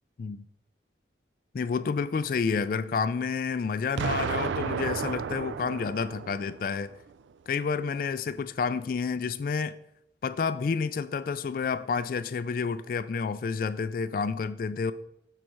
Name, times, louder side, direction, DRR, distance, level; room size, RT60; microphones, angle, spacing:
voice 1, 1.5-6.9 7.5-9.8 10.2-14.9, left 5 dB, 50° left, 0.3 m, -29 dB
Explosion, 4.0-6.9, right 6 dB, 80° right, 0.4 m, -32 dB
7.8 x 4.1 x 6.2 m
head